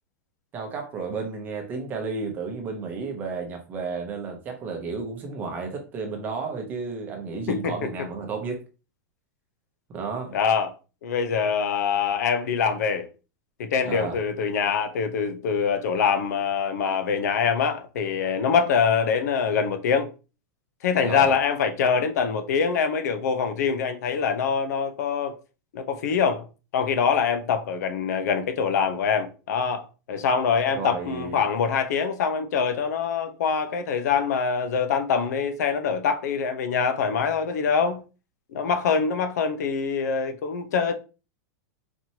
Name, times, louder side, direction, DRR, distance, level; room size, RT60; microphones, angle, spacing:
voice 1, 0.5-8.6 9.9-10.4 13.8-14.2 21.0-21.4 30.7-31.4, right 4 dB, 20° right, 0.8 m, -32 dB
voice 2, 10.3-10.7 11.0-13.1 13.6-20.1 20.8-25.3 25.7-26.5 26.7-38.0 38.5-40.9, left 6 dB, 75° left, 0.8 m, -24 dB
4.3 x 3.0 x 2.8 m
supercardioid pair, 170°, 9 cm